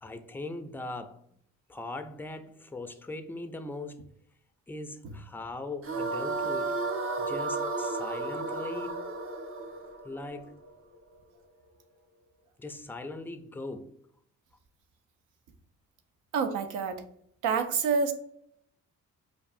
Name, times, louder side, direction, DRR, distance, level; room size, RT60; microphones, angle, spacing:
voice 1, 0.0-1.2 1.7-4.0 4.7-6.8 7.2-9.1 10.0-10.5 12.6-13.9, left 2 dB, 5° left, 0.3 m, -40 dB
sound 1, 5.8-11.0, right 3 dB, 45° right, 0.6 m, -33 dB
voice 2, 16.3-17.0 17.4-18.1, right 5 dB, 85° right, 0.6 m, -27 dB
4.6 x 2.4 x 2.6 m
cardioid pair, 90°, 30 cm